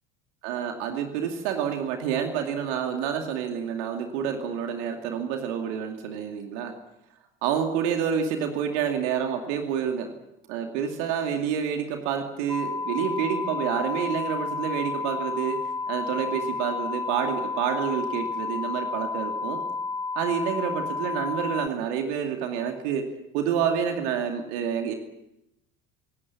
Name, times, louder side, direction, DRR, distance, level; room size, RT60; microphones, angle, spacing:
voice 1, 0.4-6.7 7.4-10.1 10.5-19.6 20.2-23.1 23.3-24.9, right 8 dB, 60° right, 5 dB, 2.6 m, -28 dB
sound 1, 12.5-21.7, left 4 dB, 5° left, 1.1 m, -31 dB
25.5 x 17.5 x 7.4 m, 0.88 s
figure-of-eight pair, 65°, 40 cm